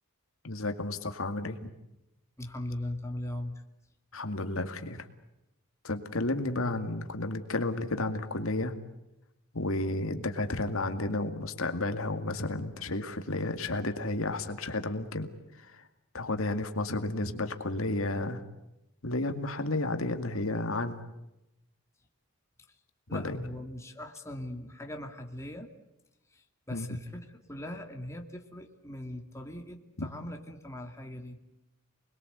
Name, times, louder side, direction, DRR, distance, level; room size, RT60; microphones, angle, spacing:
voice 1, 0.4-1.7 4.1-5.1 5.8-8.8 9.5-15.3 15.6-15.8 16.1-18.4 19.0-21.0 23.1-23.4 26.7-26.9 30.0-30.1, left 2 dB, 65° left, 6 dB, 2.2 m, -32 dB
voice 2, 2.4-3.6 22.7-22.8 23.1-25.7 26.3-31.4, left 1 dB, 15° left, 3 dB, 2.5 m, -40 dB
29.5 x 21.5 x 8.1 m, 0.91 s
head